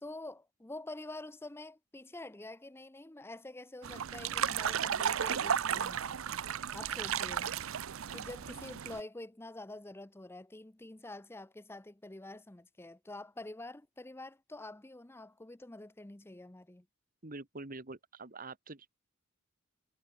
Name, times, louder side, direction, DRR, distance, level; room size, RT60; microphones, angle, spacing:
voice 1, 0.0-6.2 6.7-7.5 8.1-16.9, left 2 dB, 10° left, 0.7 m, -47 dB
sound 1, 3.8-9.0, right 8 dB, 75° right, 0.6 m, -34 dB
voice 2, 17.2-18.9, right 3 dB, 45° right, 1.8 m, -45 dB
head